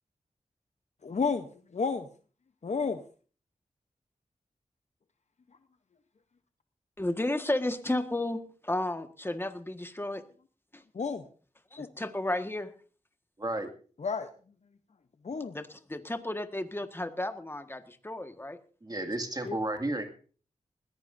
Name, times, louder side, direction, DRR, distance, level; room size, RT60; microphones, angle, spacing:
voice 1, 1.0-1.5 1.7-2.1 2.6-3.0 10.9-11.2 11.8-11.9 14.0-14.3 15.2-15.5 19.4-19.6, left 5 dB, 60° left, 8 dB, 0.9 m, -30 dB
voice 2, 7.0-10.2 10.7-10.8 11.7-12.7 15.5-18.6, left 1 dB, 15° left, 8 dB, 1.6 m, -33 dB
voice 3, 13.4-13.7 18.8-20.0, right 1 dB, 30° right, 4 dB, 2.2 m, -32 dB
20.5 x 15.0 x 2.7 m, 0.40 s
cardioid pair, 60°, 13 cm